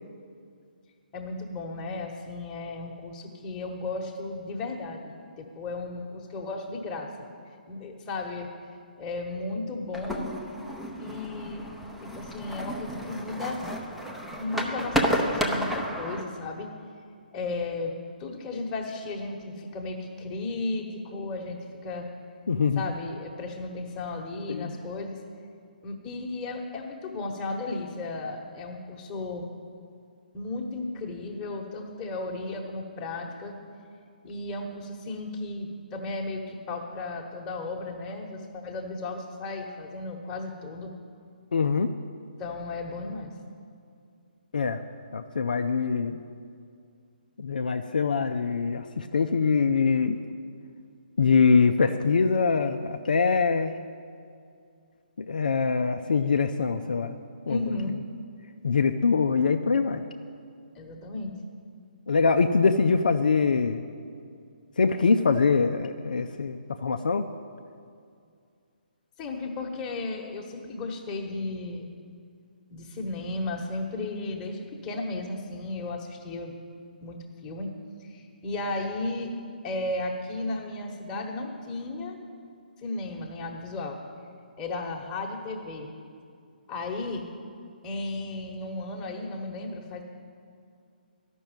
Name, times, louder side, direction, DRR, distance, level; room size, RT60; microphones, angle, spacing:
voice 1, 1.1-7.1 7.7-8.5 9.0-10.3 11.0-11.6 12.0-13.6 14.4-16.7 17.3-22.1 22.8-25.2 25.8-29.5 30.3-33.6 34.2-40.9 42.4-43.3 57.5-58.0 60.7-61.4 69.2-71.9 72.7-76.5 77.0-77.7 78.0-79.3 79.6-82.2 82.8-84.0 84.6-85.9 86.7-87.3 87.8-90.0, left 2 dB, 15° left, 0 dB, 1.3 m, -34 dB
sound 1, 9.9-16.2, equal, ahead, 0.8 m, -31 dB
voice 2, 22.5-22.8 24.5-24.7 41.5-41.9 44.5-44.8 45.1-46.2 47.4-50.2 51.2-53.8 55.3-57.1 57.5-57.6 58.6-60.0 62.1-63.8 64.8-67.2, left 5 dB, 60° left, 6 dB, 0.5 m, -23 dB
12.5 x 6.2 x 9.0 m, 2.3 s
figure-of-eight pair, 135°, 5 cm